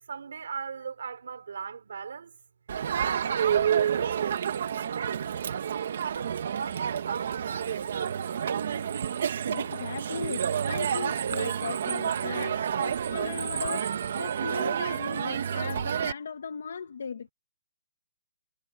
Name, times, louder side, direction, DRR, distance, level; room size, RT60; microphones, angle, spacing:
voice 1, 0.1-2.3 3.0-5.3 6.0-7.5 7.8-8.7, right 6 dB, 70° right, 4.5 m, -38 dB
Crowd, 2.7-16.1, right 8 dB, 45° right, 1.6 m, -29 dB
voice 2, 9.5-17.3, left 6 dB, 65° left, 1.7 m, -38 dB
hypercardioid pair, 180°, 0 cm